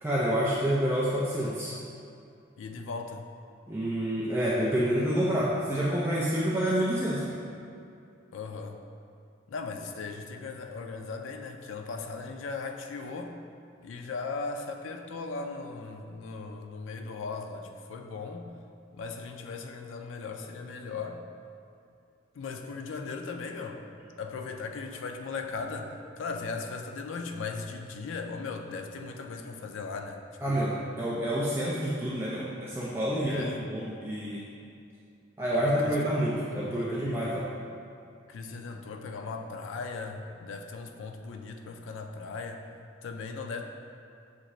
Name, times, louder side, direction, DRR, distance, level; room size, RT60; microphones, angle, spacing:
voice 1, 0.0-1.7 3.7-7.3 30.4-34.4 35.4-37.5, equal, 10° right, -8 dB, 0.4 m, -28 dB
voice 2, 2.6-3.3 8.3-8.8 9.5-13.4 13.8-18.5 18.9-21.2 22.3-23.9 24.2-30.2 30.5-30.7 33.2-33.7 35.5-36.0 36.3-37.4 38.3-42.7 43.0-43.6, left 4 dB, 80° left, 4 dB, 0.4 m, -38 dB
6.4 x 2.4 x 2.9 m, 2.5 s
head